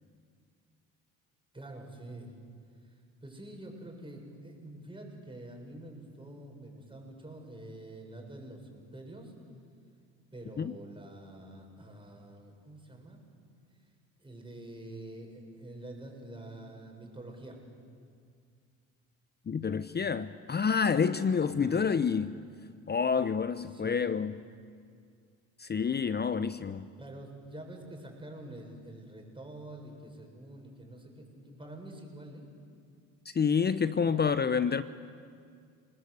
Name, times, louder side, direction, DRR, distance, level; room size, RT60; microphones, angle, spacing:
voice 1, 1.5-2.3 2.8-9.3 10.3-13.2 14.2-17.6 21.6-21.9 23.7-24.1 27.0-32.5 34.1-34.2 34.6-34.8, right 1 dB, 15° right, 1 dB, 7.4 m, -47 dB
voice 2, 19.5-22.4 22.9-24.3 25.6-26.9 33.3-34.8, left 6 dB, 25° left, 14 dB, 0.8 m, -28 dB
29.0 x 19.5 x 8.3 m, 2.2 s
hypercardioid pair, 65°, 38 cm